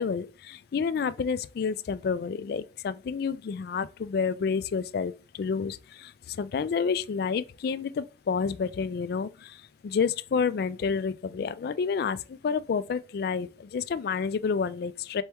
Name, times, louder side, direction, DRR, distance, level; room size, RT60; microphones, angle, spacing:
voice 1, 0.0-15.2, left 5 dB, 55° left, 0.3 m, -29 dB
4.3 x 2.9 x 3.5 m
head